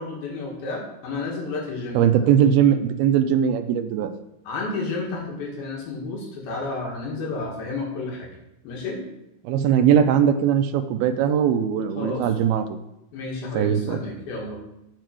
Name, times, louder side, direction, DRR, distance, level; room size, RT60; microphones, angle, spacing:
voice 1, 0.0-2.0 4.5-8.3 8.6-9.0 12.0-12.3 13.1-14.6, left 3 dB, 70° left, -1 dB, 3.7 m, -31 dB
voice 2, 1.9-4.1 9.4-12.8 13.5-14.0, right 9 dB, 80° right, 9 dB, 2.4 m, -20 dB
9.2 x 6.7 x 4.6 m, 0.86 s
omnidirectional pair, 4.6 m